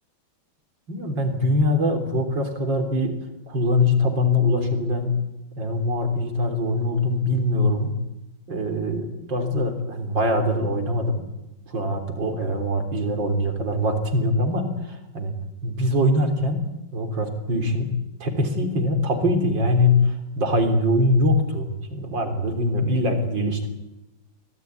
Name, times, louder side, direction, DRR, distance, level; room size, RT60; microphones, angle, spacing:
voice 1, 0.9-3.2 3.5-5.2 5.6-8.0 8.5-11.2 11.7-15.3 15.6-16.6 16.9-23.7, left 1 dB, 60° right, 6 dB, 4.2 m, -23 dB
25.0 x 18.5 x 9.5 m, 0.95 s
omnidirectional pair, 2.3 m